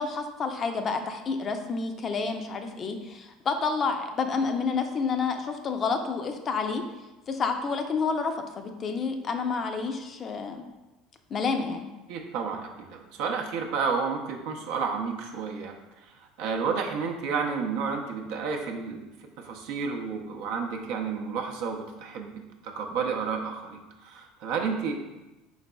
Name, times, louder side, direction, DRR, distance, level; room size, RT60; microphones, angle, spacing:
voice 1, 0.0-6.8 7.3-10.6 11.3-11.9, left 4 dB, 40° left, 6 dB, 0.4 m, -29 dB
voice 2, 12.1-15.7 16.4-19.1 19.4-22.3 22.6-24.9, right 5 dB, 75° right, 2 dB, 0.5 m, -31 dB
4.0 x 4.0 x 2.2 m, 1.1 s
hypercardioid pair, 85°, 0 cm